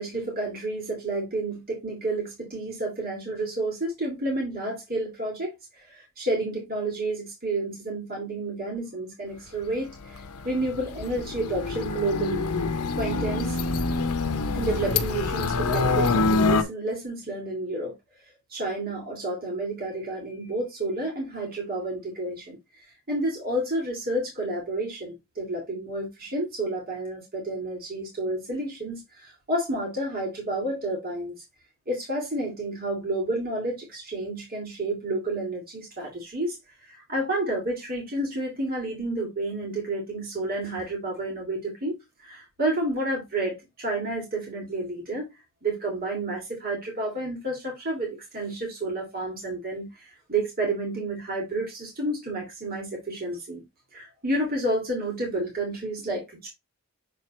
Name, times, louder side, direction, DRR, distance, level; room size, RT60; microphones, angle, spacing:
voice 1, 0.0-5.5 5.9-10.2 10.4-12.5 13.0-13.6 14.5-17.9 18.5-22.6 23.1-31.3 31.9-36.6 36.9-45.3 45.6-49.9 50.3-53.6 53.9-56.5, right 2 dB, 45° right, 2.8 m, -30 dB
sound 1, 10.2-16.6, left 3 dB, 85° left, 0.8 m, -25 dB
6.8 x 4.4 x 3.2 m
head